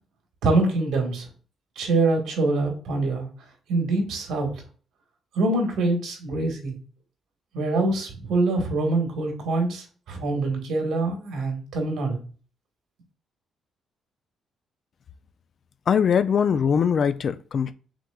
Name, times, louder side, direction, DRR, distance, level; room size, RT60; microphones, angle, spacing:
voice 1, 0.4-1.3 1.7-3.3 3.7-4.5 5.3-6.8 7.5-12.2, right 2 dB, 80° right, 1.5 m, -24 dB
voice 2, 15.9-17.7, left 7 dB, 55° left, 0.3 m, -21 dB
5.9 x 3.0 x 2.3 m
cardioid pair, 90°, 0 cm